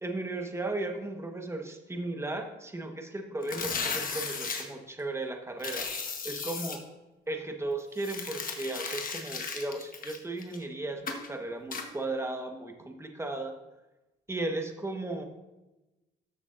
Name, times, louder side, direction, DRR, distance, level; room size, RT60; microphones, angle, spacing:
voice 1, 0.0-5.9 6.2-6.8 7.3-13.5 14.3-15.2, right 2 dB, 15° right, 4 dB, 1.3 m, -35 dB
sound 1, 3.4-4.6 5.6-6.8 8.0-10.6 11.1-11.3 11.7-11.9, left 5 dB, 45° left, 1.3 m, -35 dB
13.0 x 6.4 x 2.6 m, 1.0 s
cardioid pair, 90°, 20 cm